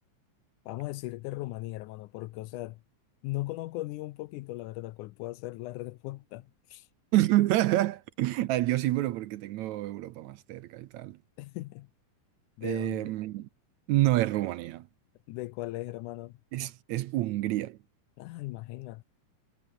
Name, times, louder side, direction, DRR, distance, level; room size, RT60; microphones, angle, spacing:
voice 1, 0.7-2.8 3.2-6.9 11.4-11.9 12.6-13.1 15.3-16.4 18.2-19.0, left 18 dB, 80° left, 2.0 m, -38 dB
voice 2, 7.1-11.2 12.6-13.5 13.9-14.9 16.5-17.8, right 16 dB, 75° right, 1.8 m, -28 dB
omnidirectional pair, 3.8 m